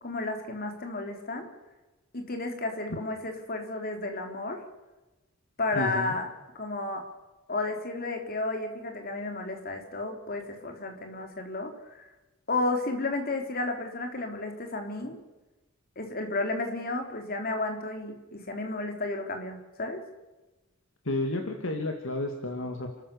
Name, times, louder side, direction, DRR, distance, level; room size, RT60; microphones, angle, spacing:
voice 1, 0.0-1.5 2.1-4.6 5.6-6.3 6.6-7.0 7.5-12.0 12.5-15.2 16.0-20.0, left 2 dB, 45° left, 4 dB, 3.5 m, -32 dB
voice 2, 5.7-6.2 21.1-22.9, left 2 dB, 60° left, 3 dB, 2.1 m, -31 dB
30.0 x 13.0 x 6.9 m, 1.1 s
head